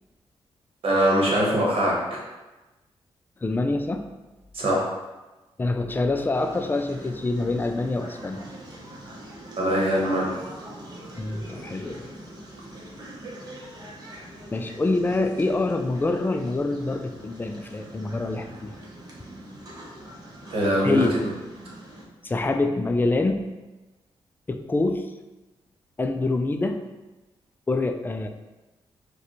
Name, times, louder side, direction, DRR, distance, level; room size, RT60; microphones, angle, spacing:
voice 1, 0.8-2.2 4.5-4.9 9.6-10.3 20.5-21.0, equal, 65° right, -4 dB, 1.1 m, -22 dB
voice 2, 3.4-4.1 5.6-8.4 11.2-12.1 14.5-18.7 20.8-21.1 22.2-23.5 24.5-25.1 26.0-26.8 27.7-28.3, left 2 dB, 20° left, 6 dB, 0.3 m, -25 dB
sound 1, 6.3-22.1, right 1 dB, 40° right, 0.9 m, -43 dB
4.7 x 2.2 x 3.0 m, 1.1 s
cardioid pair, 80°, 10 cm